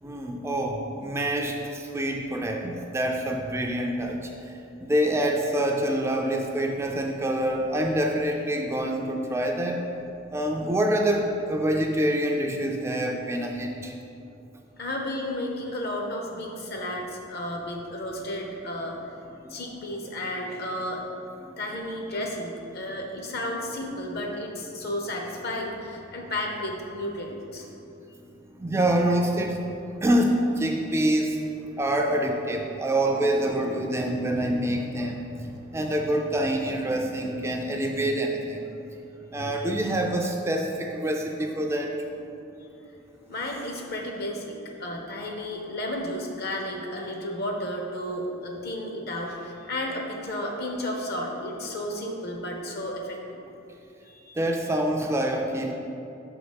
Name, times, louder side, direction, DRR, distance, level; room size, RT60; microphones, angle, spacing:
voice 1, 0.0-9.8 10.3-13.9 19.4-19.6 21.4-21.6 28.6-29.6 30.0-31.4 31.8-38.6 39.3-42.0 54.4-55.7, right 1 dB, 15° right, 1 dB, 0.3 m, -26 dB
voice 2, 14.8-19.0 19.5-21.0 21.6-27.7 43.3-53.4 54.1-54.4, left 1 dB, 50° left, 1 dB, 0.9 m, -33 dB
6.0 x 4.0 x 5.1 m, 2.8 s
head